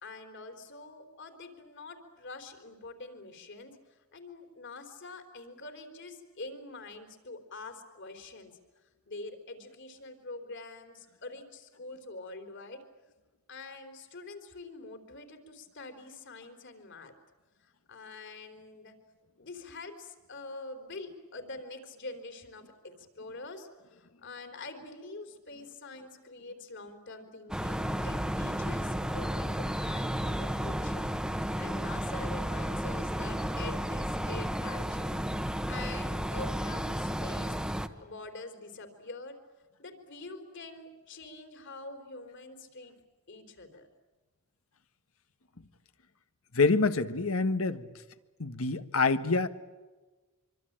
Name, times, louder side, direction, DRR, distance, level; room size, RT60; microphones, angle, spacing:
voice 1, 0.0-8.6 9.1-12.8 13.5-17.1 17.6-19.0 19.4-31.1 31.4-35.2 35.7-37.6 38.0-39.4 39.8-43.0 43.3-43.9, left 3 dB, 60° left, 7 dB, 4.1 m, -45 dB
sound 1, 27.5-37.9, equal, 5° right, 1.2 m, -32 dB
voice 2, 46.5-47.9 48.4-49.5, left 3 dB, 75° left, 10 dB, 1.5 m, -26 dB
25.5 x 25.0 x 9.0 m, 1.2 s
head